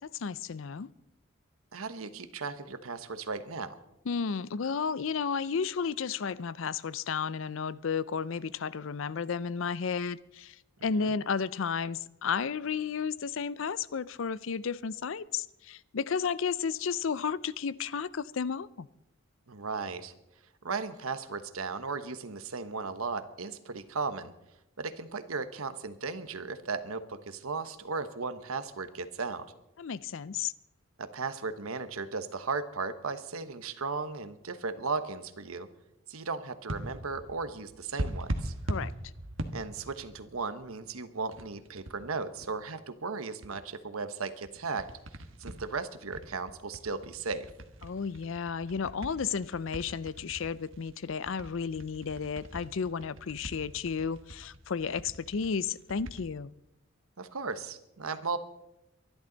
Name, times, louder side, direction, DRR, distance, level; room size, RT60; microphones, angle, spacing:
voice 1, 0.0-0.9 4.1-18.9 29.8-30.5 38.7-38.9 47.8-56.5, left 6 dB, 65° left, 19 dB, 0.5 m, -33 dB
voice 2, 1.7-3.8 11.0-11.1 19.5-20.1 20.6-24.3 24.8-29.5 31.0-35.7 36.1-38.5 39.5-44.9 45.4-47.5 57.2-58.4, right 4 dB, 85° right, 11 dB, 1.1 m, -36 dB
sound 1, 36.7-40.8 41.3-42.5 43.4-43.5 44.4-56.2, right 1 dB, 65° right, 1.3 m, -40 dB
23.5 x 11.5 x 4.0 m, 0.88 s
head